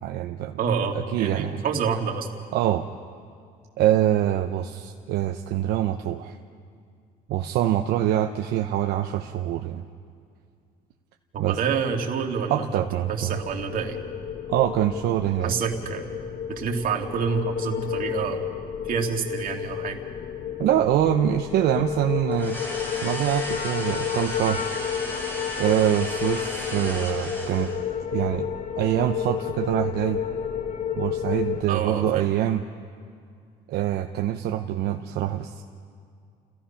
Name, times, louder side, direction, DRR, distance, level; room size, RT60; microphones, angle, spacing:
voice 1, 0.0-0.6 0.9-1.6 2.5-2.9 3.8-6.3 7.3-9.9 11.4-11.6 12.5-13.4 14.5-15.5 20.6-22.6 23.0-24.7 25.6-27.7 28.1-28.5 28.8-30.2 31.0-32.6 33.7-35.6, right 12 dB, 80° right, 4 dB, 0.8 m, -24 dB
voice 2, 0.6-2.3 11.3-12.7 13.1-14.0 15.4-16.1 16.5-18.5 18.9-20.0 31.7-32.3, right 6 dB, 55° right, 2 dB, 2.3 m, -28 dB
sound 1, 13.0-31.6, left 8 dB, 50° left, 1.2 m, -31 dB
sound 2, 22.3-27.9, left 1 dB, 15° left, 4.4 m, -35 dB
29.5 x 16.0 x 5.8 m, 2.3 s
cardioid pair, 110°, 17 cm